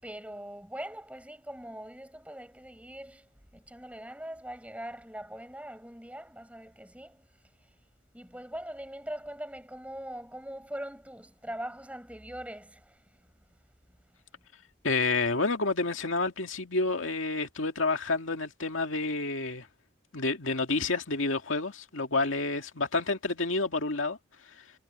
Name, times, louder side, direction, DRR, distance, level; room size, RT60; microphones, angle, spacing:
voice 1, 0.0-7.3 7.6-7.8 8.1-13.2 14.1-14.2, right 1 dB, 5° right, 7.0 m, -42 dB
voice 2, 14.8-19.7 20.1-24.7, left 3 dB, 85° left, 2.2 m, -29 dB
head